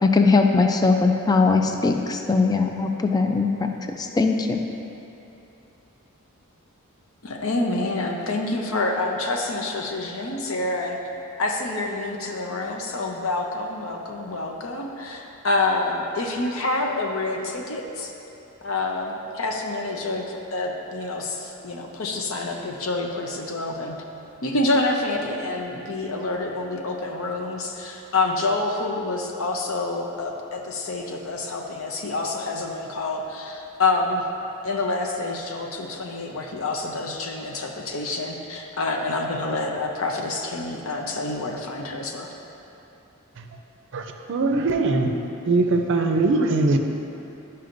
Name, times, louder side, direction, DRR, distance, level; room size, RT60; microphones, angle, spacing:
voice 1, 0.0-3.7 4.0-4.6, left 4 dB, 20° left, 4 dB, 0.3 m, -20 dB
voice 2, 7.2-11.0 11.4-18.1 18.6-24.0 24.4-34.2 34.6-42.3, left 2 dB, 65° left, 1 dB, 0.7 m, -27 dB
voice 3, 43.9-45.1 45.5-46.8, right 3 dB, 60° right, 5 dB, 0.5 m, -21 dB
11.0 x 5.5 x 2.6 m, 3.0 s
head